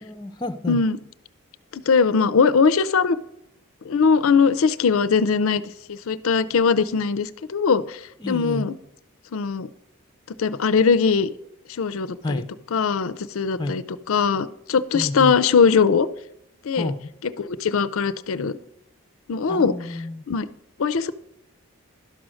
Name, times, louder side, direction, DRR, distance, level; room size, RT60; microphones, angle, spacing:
voice 1, 0.0-0.8 8.2-8.7 12.2-12.5 13.6-13.8 14.9-15.4 16.7-17.1 19.5-20.3, left 2 dB, 20° left, 8 dB, 0.6 m, -29 dB
voice 2, 0.7-1.0 1.7-3.2 3.9-5.6 5.9-8.0 8.3-8.8 9.3-9.7 10.4-11.3 11.7-12.4 12.7-13.8 14.1-16.1 16.6-16.9 17.4-18.6 19.3-19.7 20.3-20.5 20.8-21.1, left 5 dB, 70° left, 15 dB, 0.5 m, -20 dB
11.5 x 6.2 x 6.3 m, 0.77 s
head